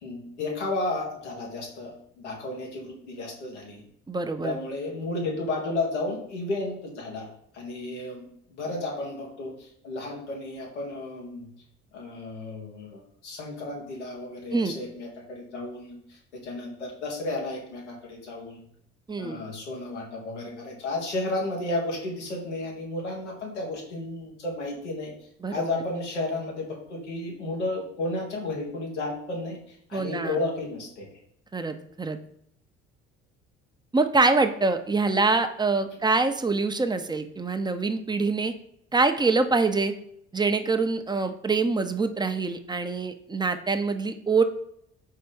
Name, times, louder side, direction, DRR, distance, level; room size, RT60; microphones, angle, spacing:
voice 1, 0.0-3.8 4.4-11.5 11.9-18.6 19.2-25.1 25.5-31.1, left 2 dB, 90° left, -2 dB, 1.6 m, -33 dB
voice 2, 4.1-4.5 14.5-14.7 19.1-19.4 25.4-25.8 29.9-30.4 31.5-32.2 33.9-38.5 38.9-39.9 40.3-44.4, right 3 dB, 10° right, 7 dB, 0.7 m, -25 dB
4.6 x 4.2 x 5.3 m, 0.70 s
hypercardioid pair, 55°, 34 cm